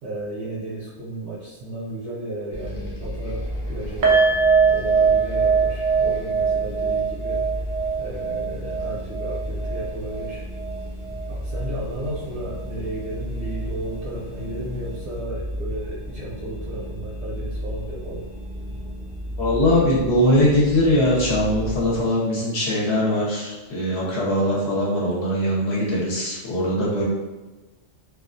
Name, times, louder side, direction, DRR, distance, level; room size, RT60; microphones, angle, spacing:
voice 1, 0.0-4.2 4.6-7.4 8.0-10.4 11.3-18.3, right 1 dB, 70° right, -6 dB, 0.8 m, -34 dB
sound 1, 2.5-22.0, equal, 45° left, 0.4 m, -33 dB
sound 2, 4.0-11.2 11.5-11.7 12.1-12.2, right 5 dB, 90° right, 0.4 m, -22 dB
voice 2, 19.4-27.0, left 1 dB, 60° left, -6 dB, 0.9 m, -21 dB
2.4 x 2.2 x 2.4 m, 1.2 s
omnidirectional pair, 1.3 m